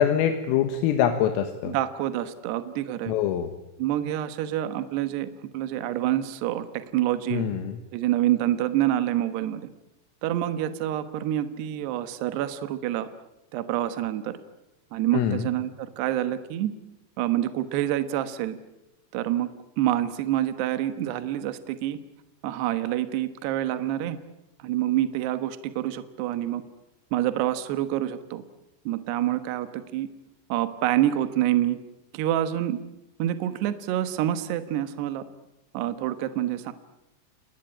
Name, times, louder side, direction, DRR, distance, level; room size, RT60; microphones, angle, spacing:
voice 1, 0.0-1.8 3.1-3.5 7.3-7.8 15.1-15.5, left 9 dB, 90° left, 7 dB, 4.0 m, -24 dB
voice 2, 1.6-3.1 3.8-7.4 7.9-9.7 10.2-13.1 13.5-14.4 14.9-16.7 17.2-18.6 19.1-19.5 19.8-22.0 22.4-24.2 24.6-26.6 27.1-28.4 28.9-30.1 30.5-31.8 32.1-32.8 33.2-35.2 35.7-36.7, right 13 dB, 70° right, 10 dB, 2.8 m, -27 dB
30.0 x 19.5 x 8.9 m, 0.94 s
omnidirectional pair, 5.9 m